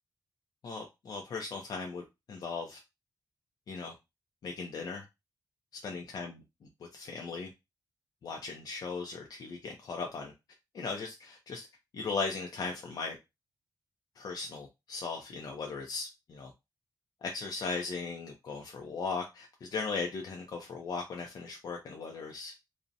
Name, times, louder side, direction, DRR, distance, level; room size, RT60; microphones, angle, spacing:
voice 1, 0.6-2.8 3.7-3.9 4.4-5.0 5.8-6.3 6.9-7.5 8.2-10.3 10.7-11.7 11.9-13.2 14.2-16.5 17.2-22.6, left 4 dB, 60° left, 0.4 m, -38 dB
2.6 x 2.0 x 2.5 m
wide cardioid pair, 165°, 8 cm